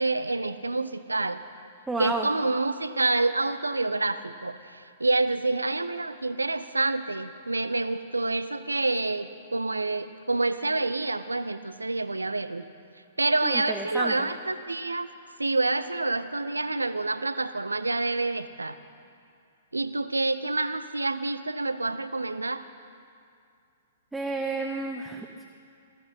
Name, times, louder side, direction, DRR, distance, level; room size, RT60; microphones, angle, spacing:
voice 1, 0.0-1.4 2.0-12.6 13.2-15.1 15.4-18.8 19.7-22.6, right 2 dB, 80° right, 13 dB, 0.6 m, -27 dB
voice 2, 1.9-2.3 13.4-14.3 24.1-25.4, right 3 dB, 5° right, 1 dB, 0.9 m, -31 dB
19.5 x 15.0 x 4.3 m, 2.4 s
figure-of-eight pair, 110°, 0 cm